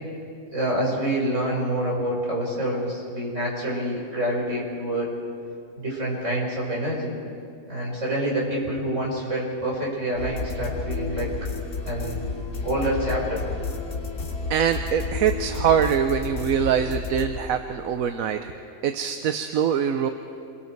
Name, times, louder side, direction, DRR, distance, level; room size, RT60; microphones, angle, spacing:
voice 1, 0.5-5.1 5.8-7.1 7.7-11.3 11.9-12.2 12.6-13.4, right 1 dB, 60° right, -3 dB, 5.4 m, -27 dB
sound 1, 10.1-18.3, left 3 dB, 75° left, 2.5 m, -31 dB
voice 2, 14.5-18.5 18.8-20.1, right 8 dB, 85° right, 8 dB, 1.2 m, -23 dB
27.5 x 22.0 x 4.7 m, 2.5 s
omnidirectional pair, 1.4 m